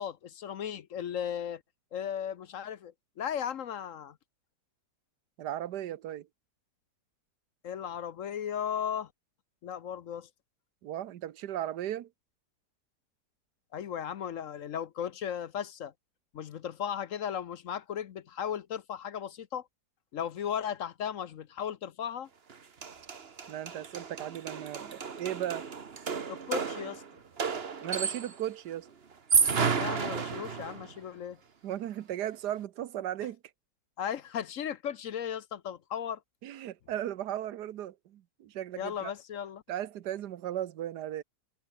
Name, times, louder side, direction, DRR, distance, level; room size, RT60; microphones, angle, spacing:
voice 1, 0.0-1.6 1.9-4.2 7.6-9.1 9.6-10.3 13.7-15.9 16.3-19.6 20.1-22.3 26.3-27.0 29.7-31.4 34.0-36.2 38.8-39.6, left 9 dB, 60° left, 1.1 m, -36 dB
voice 2, 5.4-6.3 10.8-12.1 23.5-25.7 27.8-28.9 31.6-33.4 36.4-39.1 39.7-41.2, right 12 dB, 80° right, 1.5 m, -36 dB
sound 1, 22.5-22.6 22.8-28.5 29.1-30.9, right 6 dB, 40° right, 1.4 m, -31 dB
omnidirectional pair, 1.7 m